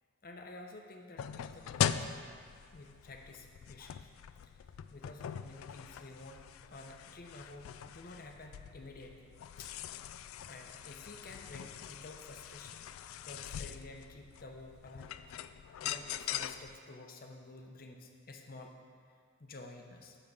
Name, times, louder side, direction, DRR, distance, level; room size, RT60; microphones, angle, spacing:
voice 1, 0.2-2.4 2.7-4.0 4.4-4.6 4.9-9.3 9.6-9.7 10.5-12.9 13.2-15.2 15.8-18.7 19.4-20.2, left 2 dB, 45° left, 3 dB, 0.7 m, -51 dB
sound 1, 1.2-16.8, left 9 dB, 85° left, 0.3 m, -41 dB
9.9 x 3.6 x 6.9 m, 2.1 s
head